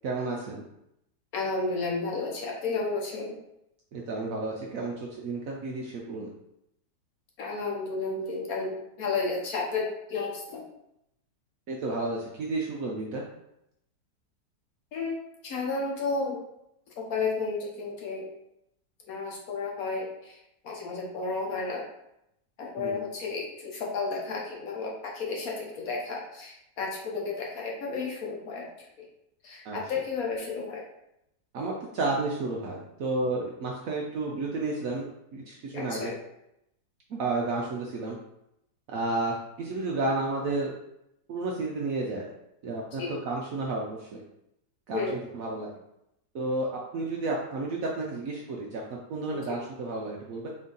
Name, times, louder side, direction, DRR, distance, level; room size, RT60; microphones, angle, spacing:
voice 1, 0.0-0.6 3.9-6.3 11.7-13.2 22.8-23.0 29.6-29.8 31.5-35.1 35.3-36.1 37.1-38.2 38.9-40.7 41.3-42.3 42.6-44.2 44.9-45.7 46.3-50.5, right 2 dB, 70° right, -1 dB, 0.8 m, -32 dB
voice 2, 1.3-3.4 7.4-10.6 14.9-15.2 15.4-16.4 17.0-18.3 19.1-20.4 20.6-21.8 22.6-28.7 29.4-30.8 35.7-36.1 42.9-43.2 44.9-45.2 49.3-49.6, left 4 dB, 60° left, -1 dB, 1.1 m, -32 dB
4.3 x 2.7 x 3.7 m, 0.82 s
omnidirectional pair, 1.9 m